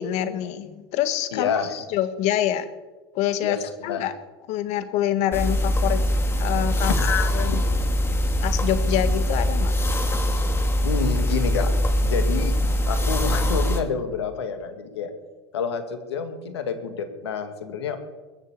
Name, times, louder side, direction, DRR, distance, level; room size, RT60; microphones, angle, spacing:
voice 1, 0.0-1.5 1.9-2.7 3.1-4.1 4.5-6.0 6.4-6.9 7.3-7.6 8.4-9.7, left 11 dB, 60° left, 11 dB, 1.7 m, -26 dB
voice 2, 1.3-1.8 3.4-3.6 3.9-4.0 6.7-7.8 10.8-11.7 12.0-15.1 15.5-18.0, left 6 dB, 85° left, 8 dB, 2.0 m, -28 dB
sound 1, 5.3-13.8, equal, 20° left, 2.1 m, -22 dB
21.5 x 7.3 x 8.5 m, 1.2 s
hypercardioid pair, 90°, 13 cm